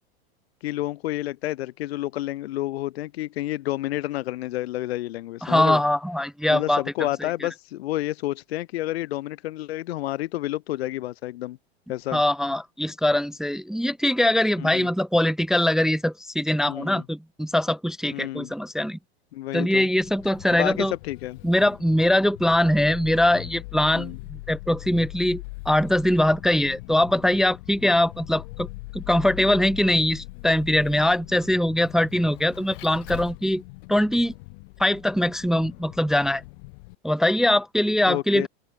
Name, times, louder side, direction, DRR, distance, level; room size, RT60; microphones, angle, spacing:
voice 1, 0.6-5.8 6.5-11.6 11.9-12.2 14.6-14.9 16.7-17.0 18.1-18.5 19.3-19.9 20.5-21.4 23.9-24.2 38.1-38.5, left 15 dB, 70° left, 1.5 m, -30 dB
voice 2, 5.4-6.8 12.1-19.0 19.5-20.9 21.4-28.7 28.9-33.6 33.9-34.3 34.8-36.4 37.0-38.5, left 1 dB, ahead, 0.4 m, -22 dB
Vehicle, 20.0-36.9, left 28 dB, 55° left, 1.2 m, -41 dB
open air
hypercardioid pair, 115°, 32 cm